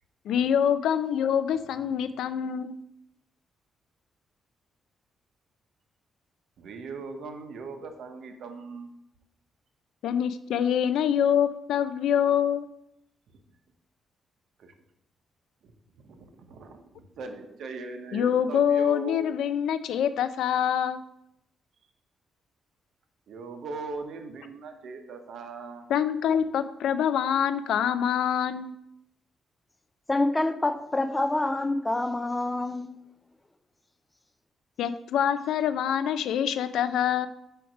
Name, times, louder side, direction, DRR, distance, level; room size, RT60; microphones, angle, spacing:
voice 1, 0.3-2.8 10.0-12.7 18.1-21.0 25.9-28.7 34.8-37.3, left 9 dB, 85° left, 0.4 m, -25 dB
voice 2, 6.6-8.9 14.6-14.7 16.0-19.2 23.3-25.9, right 4 dB, 65° right, 0.8 m, -39 dB
voice 3, 30.1-32.9, left 2 dB, 10° left, 0.3 m, -26 dB
5.0 x 4.6 x 5.1 m
cardioid pair, 170°, 0 cm